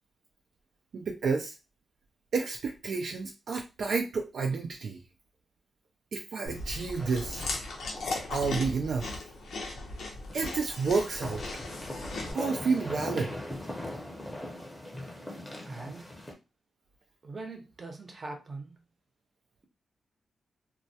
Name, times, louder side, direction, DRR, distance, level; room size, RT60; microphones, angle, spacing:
voice 1, 0.9-1.5 2.3-5.0 6.1-7.5 8.3-9.1 10.3-11.4 12.3-13.3, right 4 dB, 70° right, 0.3 m, -30 dB
Chewing mastication, 6.5-12.3, left 2 dB, 80° left, 0.6 m, -37 dB
sound 1, 7.0-8.5 8.8-8.9 10.3-16.3, left 1 dB, 10° left, 0.7 m, -40 dB
voice 2, 15.6-16.1 17.2-18.8, right 3 dB, 40° right, 0.7 m, -42 dB
2.2 x 2.1 x 2.7 m
cardioid pair, 90°, 0 cm